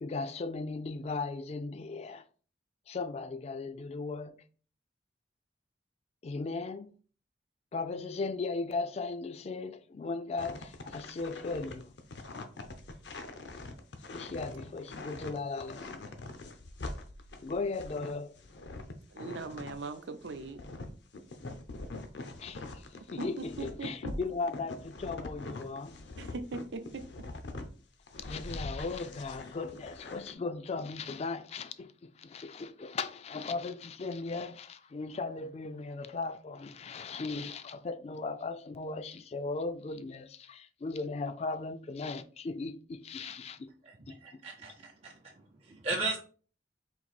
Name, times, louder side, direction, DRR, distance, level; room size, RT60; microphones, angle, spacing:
voice 1, 0.0-2.2 2.9-4.4 6.2-6.9 7.7-11.9 14.1-16.0 17.4-18.3 22.4-22.8 23.1-26.0 28.2-43.7 44.1-44.4, left 3 dB, 35° left, 0.3 m, -37 dB
sound 1, 10.4-19.9 20.2-27.7 28.1-30.3, left 2 dB, 70° left, 0.6 m, -43 dB
voice 2, 19.1-20.6 23.2-23.9 26.2-27.0, right 3 dB, 80° right, 0.6 m, -40 dB
voice 3, 43.8-46.2, right 3 dB, 35° right, 0.5 m, -37 dB
4.0 x 2.6 x 4.1 m
head